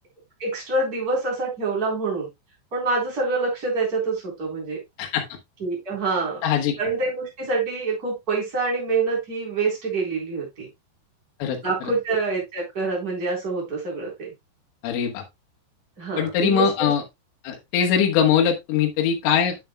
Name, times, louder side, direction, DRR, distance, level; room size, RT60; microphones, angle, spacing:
voice 1, 0.4-2.3 2.7-4.8 5.6-6.4 6.8-10.7 11.6-14.3 16.0-16.9, right 3 dB, 20° right, -3 dB, 3.7 m, -26 dB
voice 2, 6.4-6.7 11.4-11.6 14.8-15.2 16.2-17.0 17.4-19.6, left 8 dB, 85° left, 1 dB, 3.7 m, -21 dB
9.5 x 7.1 x 2.2 m, 0.20 s
omnidirectional pair, 5.4 m